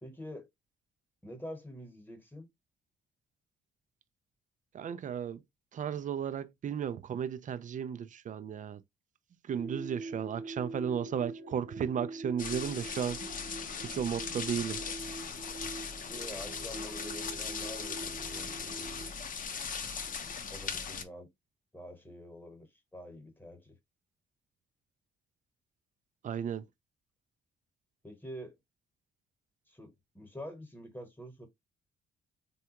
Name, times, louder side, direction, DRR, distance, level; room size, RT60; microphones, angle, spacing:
voice 1, 0.0-0.5 1.2-2.5 16.1-19.1 20.5-21.3 21.7-22.7 22.9-23.7 28.0-28.6 29.7-31.5, equal, 10° left, 1.2 m, -46 dB
voice 2, 4.7-5.4 5.7-8.8 9.5-13.2 13.8-14.8 26.2-26.7, right 8 dB, 40° right, 0.4 m, -34 dB
sound 1, 9.6-19.1, right 2 dB, 70° right, 1.1 m, -44 dB
sound 2, 12.4-21.0, left 6 dB, 45° left, 0.6 m, -39 dB
3.4 x 2.3 x 2.9 m
cardioid pair, 90°, 20 cm